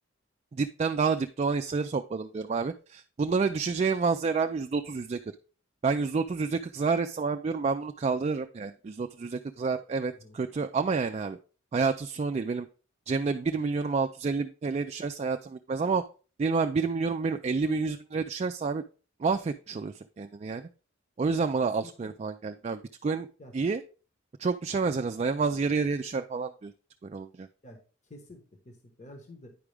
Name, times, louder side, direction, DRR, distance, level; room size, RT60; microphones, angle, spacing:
voice 1, 0.5-5.2 5.8-11.4 11.7-12.7 13.1-16.0 16.4-18.8 19.2-20.7 21.2-23.3 23.5-23.8 24.4-26.7 27.0-27.5, right 4 dB, 35° right, 6 dB, 0.3 m, -29 dB
voice 2, 21.8-22.1 23.4-23.5 25.1-25.2 27.6-27.8 28.1-29.6, left 1 dB, 35° left, 4 dB, 1.2 m, -49 dB
9.8 x 4.9 x 3.4 m, 0.37 s
head